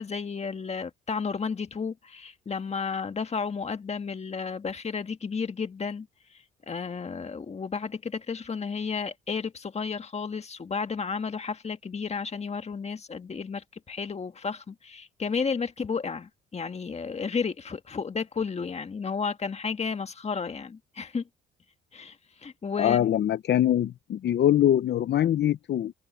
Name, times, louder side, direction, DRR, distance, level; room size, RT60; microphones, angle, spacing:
voice 1, 0.0-6.1 6.7-21.2 21.9-22.2 22.4-23.2, left 5 dB, 35° left, 1.7 m, -32 dB
voice 2, 22.8-25.9, left 11 dB, 60° left, 0.8 m, -23 dB
cardioid pair, 90°, 20 cm